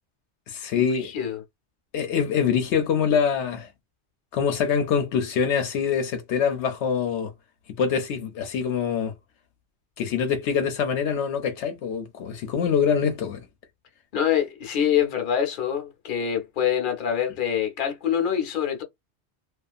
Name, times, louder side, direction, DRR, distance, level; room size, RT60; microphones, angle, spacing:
voice 1, 0.5-1.1 1.9-3.7 4.3-7.3 7.8-9.1 10.0-13.5, left 7 dB, 80° left, 0.9 m, -24 dB
voice 2, 14.1-18.8, left 9 dB, 55° left, 0.8 m, -25 dB
2.6 x 2.4 x 2.3 m
omnidirectional pair, 1.2 m